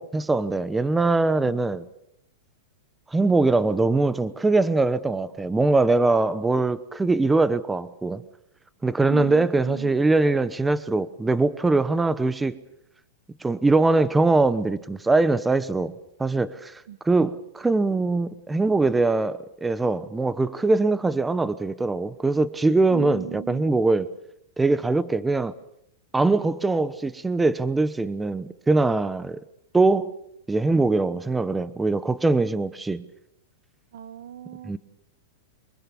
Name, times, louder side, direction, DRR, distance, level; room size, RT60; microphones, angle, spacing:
voice 1, 0.0-1.8 3.1-8.2 8.8-12.6 13.4-15.9 16.2-24.1 24.6-25.5 26.1-29.4 29.7-30.1 30.5-33.1 34.6-34.8, right 3 dB, 10° right, 1.0 m, -22 dB
voice 2, 9.1-10.0 16.9-17.0 22.9-23.6 33.9-34.8, right 10 dB, 75° right, 1.3 m, -38 dB
24.5 x 23.5 x 7.1 m
hypercardioid pair, 140°, 0 cm